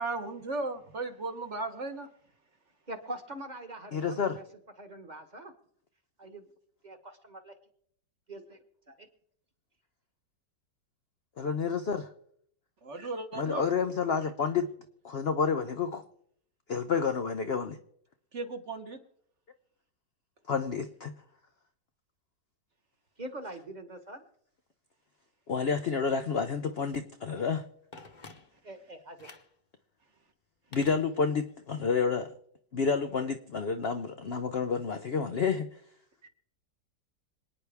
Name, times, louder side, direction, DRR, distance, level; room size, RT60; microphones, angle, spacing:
voice 1, 0.0-2.1 12.8-13.7 18.3-19.0, right 3 dB, 45° right, 6 dB, 1.3 m, -36 dB
voice 2, 2.9-4.4 4.8-5.5 6.2-6.4 6.8-7.5 8.3-9.1 23.2-24.2 28.6-29.3, right 1 dB, 25° right, 7 dB, 1.3 m, -43 dB
voice 3, 3.9-4.4 11.4-12.1 13.4-14.7 15.0-16.0 16.7-17.8 20.5-21.1 25.5-27.6 30.7-32.3 32.7-35.7, left 5 dB, 60° left, 7 dB, 0.6 m, -29 dB
Telephone, 27.9-28.8 29.2-29.6 30.7-31.6 31.9-32.0, left 3 dB, 30° left, 1.0 m, -50 dB
27.0 x 9.5 x 3.5 m, 0.67 s
omnidirectional pair, 1.9 m